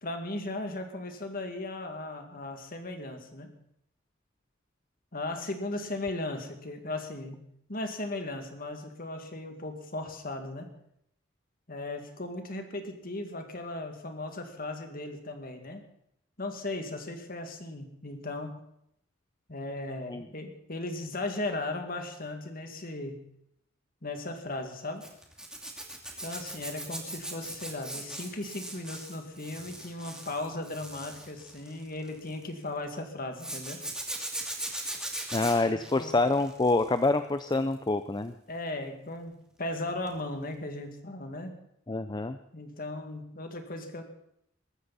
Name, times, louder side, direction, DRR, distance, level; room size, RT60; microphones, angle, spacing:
voice 1, 0.0-3.5 5.1-7.4 7.7-10.7 11.7-15.8 16.4-18.6 19.5-23.2 24.0-25.1 26.2-33.8 36.0-36.1 38.5-41.5 42.5-44.0, left 2 dB, 45° left, 5 dB, 2.3 m, -37 dB
Zipper (clothing), 25.0-32.4 33.4-37.0 37.4-37.7 40.1-40.2 40.5-40.6, right 1 dB, 5° right, 2.6 m, -39 dB
voice 2, 35.3-38.3 41.9-42.4, left 2 dB, 20° left, 10 dB, 0.5 m, -26 dB
22.5 x 13.5 x 4.2 m, 0.74 s
head